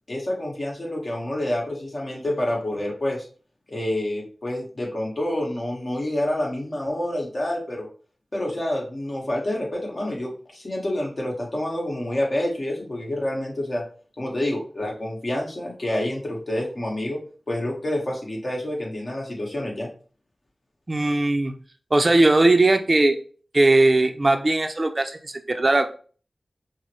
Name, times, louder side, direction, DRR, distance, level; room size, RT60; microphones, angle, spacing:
voice 1, 0.1-3.3 3.7-7.9 8.3-13.8 14.2-17.2 17.5-19.9, left 1 dB, 50° left, -2 dB, 1.5 m, -28 dB
voice 2, 20.9-21.5 21.9-23.2 23.5-25.9, right 2 dB, 45° right, 7 dB, 0.5 m, -19 dB
5.3 x 2.1 x 3.2 m, 0.40 s
cardioid pair, 40°, 0 cm